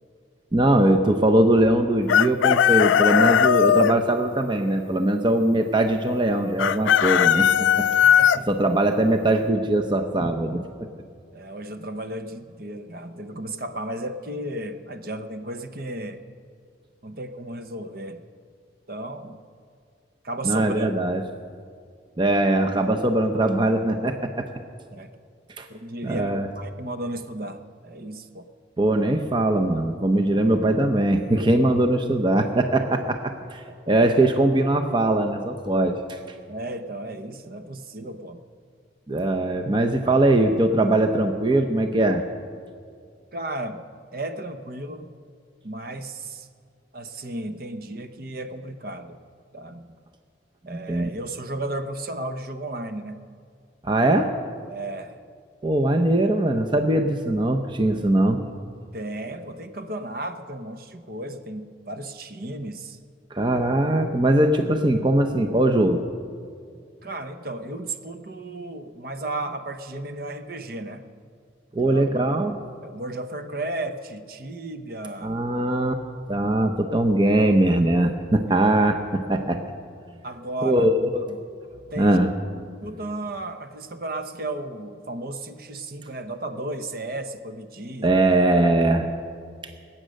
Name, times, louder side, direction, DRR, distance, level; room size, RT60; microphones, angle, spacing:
voice 1, 0.5-7.5 7.8-7.9 8.5-10.6 20.4-21.2 22.2-24.5 25.6-25.7 26.0-26.5 28.8-36.2 39.1-42.2 50.7-51.1 53.8-54.3 55.6-58.4 63.3-66.0 71.7-72.5 75.2-75.9 76.3-79.6 80.6-81.2 82.0-82.3 88.0-89.1, right 1 dB, 25° right, 5 dB, 0.7 m, -21 dB
Chicken rooster, 2.1-3.9 6.6-8.4, left 9 dB, 85° left, 0.3 m, -18 dB
voice 2, 8.0-8.5 11.3-16.2 17.0-18.2 18.9-19.4 20.2-20.9 24.9-25.1 25.7-28.5 33.7-33.8 36.5-38.4 40.0-40.2 43.3-43.8 44.1-45.1 45.6-46.5 46.9-49.2 49.5-50.0 50.7-53.2 54.7-55.2 58.9-63.0 66.7-71.0 71.8-75.4 78.6-78.7 80.1-80.9 81.3-81.4 81.9-82.2 82.8-88.2, right 1 dB, 50° right, 8 dB, 0.9 m, -34 dB
22.5 x 9.0 x 6.4 m, 2.3 s
head